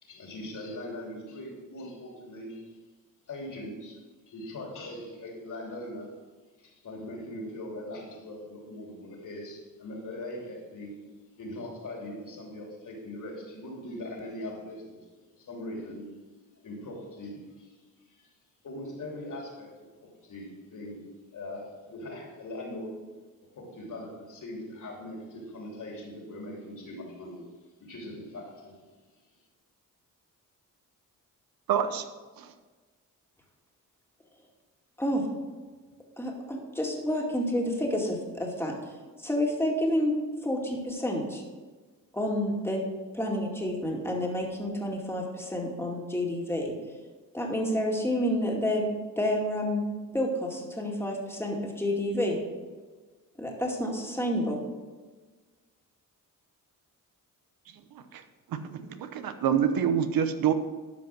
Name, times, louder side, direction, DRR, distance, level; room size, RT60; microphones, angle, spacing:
voice 1, 0.0-2.7 3.3-6.1 6.6-11.0 11.4-15.0 15.4-16.1 16.6-17.7 18.1-18.3 18.6-21.0 21.3-23.0 23.5-27.4 27.8-28.8, left 1 dB, 60° left, 0 dB, 3.2 m, -41 dB
voice 2, 31.7-32.1 32.4-32.5 58.1-58.2 58.5-60.5, right 8 dB, 85° right, 9 dB, 0.9 m, -26 dB
voice 3, 36.2-40.2 40.4-41.4 42.1-42.8 43.1-46.7 47.3-48.8 49.2-49.8 50.1-52.4 53.4-54.6, left 1 dB, 5° left, -1 dB, 2.3 m, -29 dB
12.5 x 5.3 x 6.1 m, 1.4 s
cardioid pair, 90°, 34 cm